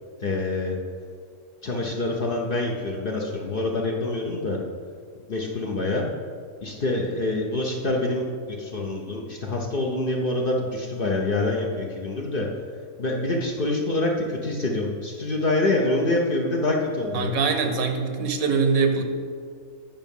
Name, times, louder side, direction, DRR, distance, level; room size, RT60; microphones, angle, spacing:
voice 1, 0.2-0.8 1.6-4.6 5.3-6.1 6.6-12.5 13.0-17.3, left 2 dB, 45° left, 0 dB, 0.8 m, -26 dB
voice 2, 17.1-19.0, right 4 dB, 70° right, 5 dB, 1.2 m, -23 dB
9.2 x 5.7 x 5.3 m, 2.1 s
omnidirectional pair, 1.6 m